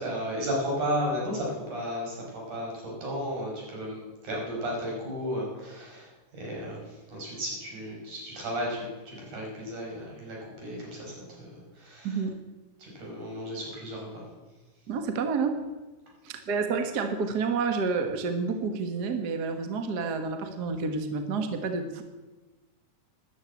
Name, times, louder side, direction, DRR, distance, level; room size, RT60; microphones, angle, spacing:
voice 1, 0.0-12.2 12.8-14.2, equal, 70° right, -2 dB, 6.5 m, -34 dB
voice 2, 12.0-12.3 14.9-15.6 16.2-22.0, right 4 dB, 50° right, 7 dB, 1.2 m, -29 dB
13.0 x 11.0 x 8.4 m, 1.2 s
omnidirectional pair, 3.7 m